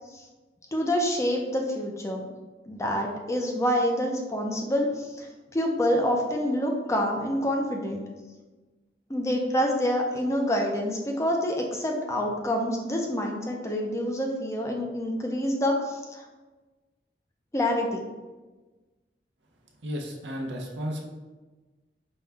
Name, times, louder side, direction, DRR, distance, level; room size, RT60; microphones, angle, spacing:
voice 1, 0.7-2.3 2.7-8.1 9.1-16.2 17.5-18.0, equal, 15° left, 1 dB, 0.4 m, -27 dB
voice 2, 19.8-21.1, equal, 90° right, 1 dB, 0.7 m, -33 dB
5.3 x 2.2 x 3.4 m, 1.2 s
head